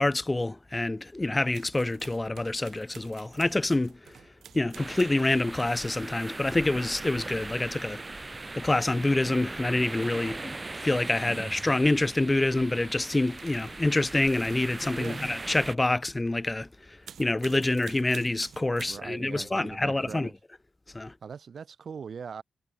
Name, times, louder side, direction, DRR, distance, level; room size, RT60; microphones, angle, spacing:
voice 1, 0.0-4.2 4.5-8.0 8.6-10.5 10.8-20.3 20.9-21.1, left 2 dB, 15° left, 0.5 m, -27 dB
sound 1, 1.5-5.9 7.4-8.2 8.6-9.2 9.8-10.5 10.9-11.5 12.1-12.5 13.2-13.8 14.1-16.4 16.8-19.3, right 8 dB, 85° right, 6.0 m, -51 dB
sound 2, 4.7-15.8, right 3 dB, 25° right, 7.8 m, -40 dB
voice 2, 11.2-11.5 15.0-15.2 18.8-20.3 21.2-22.4, right 6 dB, 55° right, 6.2 m, -41 dB
wide cardioid pair, 125°, 0 cm